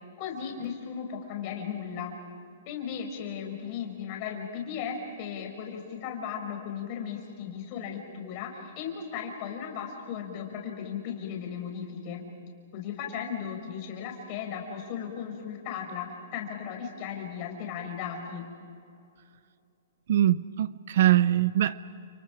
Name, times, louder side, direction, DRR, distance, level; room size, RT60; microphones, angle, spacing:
voice 1, 0.2-2.1 2.7-12.2 12.7-18.4, left 7 dB, 30° left, 2 dB, 4.7 m, -36 dB
voice 2, 20.1-21.9, right 12 dB, 50° right, 16 dB, 0.6 m, -23 dB
29.5 x 28.5 x 5.1 m, 2.5 s
hypercardioid pair, 170°, 0 cm